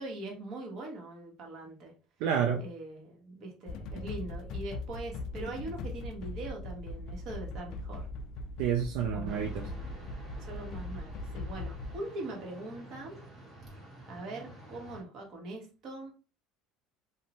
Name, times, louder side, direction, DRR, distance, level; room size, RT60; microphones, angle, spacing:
voice 1, 0.0-1.9 2.6-8.1 9.1-9.4 10.4-13.2 14.1-16.1, right 2 dB, 55° right, 1.1 m, -42 dB
voice 2, 2.2-2.6 8.6-9.7, right 8 dB, 75° right, 0.3 m, -29 dB
sound 1, 3.7-12.0, left 2 dB, 60° left, 0.3 m, -40 dB
sound 2, 9.3-15.0, right 1 dB, 30° right, 1.3 m, -49 dB
2.6 x 2.0 x 2.9 m
supercardioid pair, 110°, 0 cm